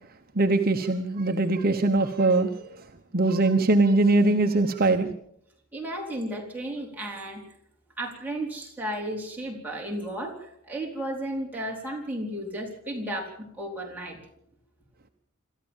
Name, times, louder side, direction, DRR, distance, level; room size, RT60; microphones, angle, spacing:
voice 1, 0.3-2.8 3.1-5.1, right 2 dB, 45° right, 5 dB, 1.1 m, -22 dB
voice 2, 5.7-7.4 8.0-14.2, right 1 dB, 10° right, -1 dB, 4.2 m, -34 dB
26.0 x 14.0 x 7.3 m, 0.73 s
head